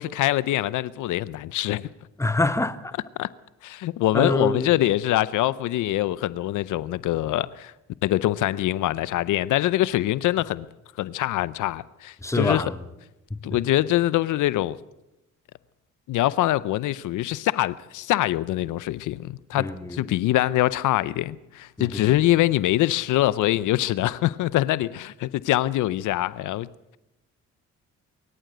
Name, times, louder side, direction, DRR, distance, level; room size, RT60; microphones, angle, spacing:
voice 1, 0.0-1.9 3.2-3.3 3.6-7.7 8.0-10.7 11.0-12.6 13.4-14.8 16.1-26.7, left 15 dB, 80° left, 0.6 m, -24 dB
voice 2, 2.2-2.9 4.1-4.7 12.2-12.8 13.3-13.4 19.5-20.0 21.8-22.1, left 2 dB, 10° left, 1.3 m, -26 dB
24.5 x 14.0 x 7.8 m
cardioid pair, 90°, 30 cm